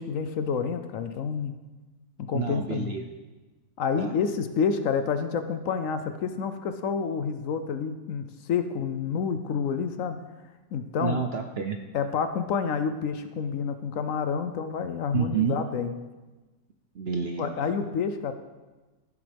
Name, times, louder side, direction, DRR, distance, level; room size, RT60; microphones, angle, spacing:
voice 1, 0.0-1.5 2.3-3.0 3.8-10.2 10.7-11.2 11.9-15.9 17.4-18.3, left 6 dB, 65° left, 9 dB, 0.9 m, -29 dB
voice 2, 2.3-3.0 4.0-4.1 11.0-11.8 15.1-15.6 16.9-17.5, right 7 dB, 60° right, 5 dB, 0.6 m, -29 dB
15.5 x 6.9 x 3.4 m, 1.2 s
omnidirectional pair, 1.6 m